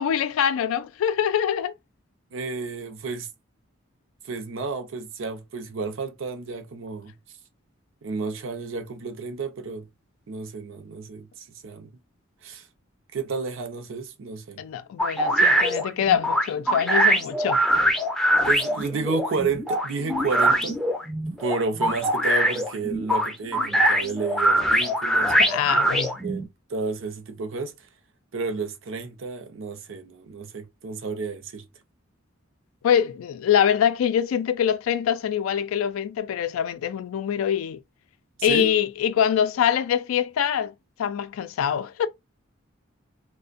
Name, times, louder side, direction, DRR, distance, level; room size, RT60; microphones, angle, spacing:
voice 1, 0.0-1.7 14.6-17.6 25.4-26.2 32.8-37.8 38.4-40.7 41.0-42.1, left 8 dB, 85° left, 0.3 m, -24 dB
voice 2, 2.3-3.3 4.2-7.1 8.0-9.9 10.3-11.9 12.4-12.7 13.1-14.6 18.5-20.8 21.4-25.3 26.2-26.4 26.7-27.7 28.3-31.6 38.4-38.7, right 4 dB, 70° right, 0.5 m, -31 dB
sound 1, 15.0-26.4, right 1 dB, 5° left, 0.4 m, -22 dB
2.5 x 2.0 x 2.4 m
head